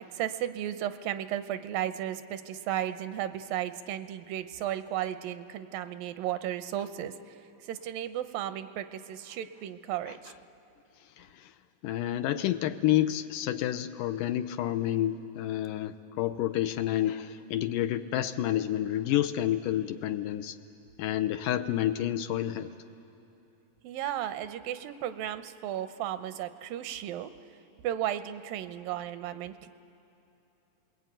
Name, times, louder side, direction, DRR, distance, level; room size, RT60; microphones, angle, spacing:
voice 1, 0.0-7.4 7.6-10.3 23.8-27.3 27.8-29.7, right 11 dB, 80° right, 10 dB, 2.5 m, -34 dB
voice 2, 11.2-11.5 11.8-20.6 21.0-22.7, left 12 dB, 80° left, 9 dB, 2.2 m, -29 dB
29.5 x 21.5 x 9.1 m, 3.0 s
omnidirectional pair, 4.0 m